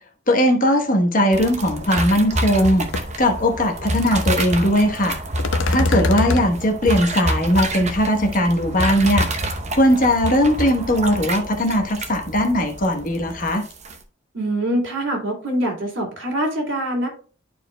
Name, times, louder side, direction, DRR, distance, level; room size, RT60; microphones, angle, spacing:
voice 1, 0.3-2.9 3.2-5.2 5.7-9.3 9.7-13.6, equal, 45° left, 5 dB, 1.1 m, -19 dB
sound 1, 1.3-14.0, right 1 dB, 35° right, 0.8 m, -28 dB
sound 2, 1.9-2.0 2.4-2.7 2.9-3.0 5.4-6.5, left 2 dB, 75° left, 0.7 m, -21 dB
voice 2, 14.3-17.1, right 1 dB, 75° right, 0 dB, 2.6 m, -24 dB
12.0 x 4.5 x 2.2 m, 0.39 s
head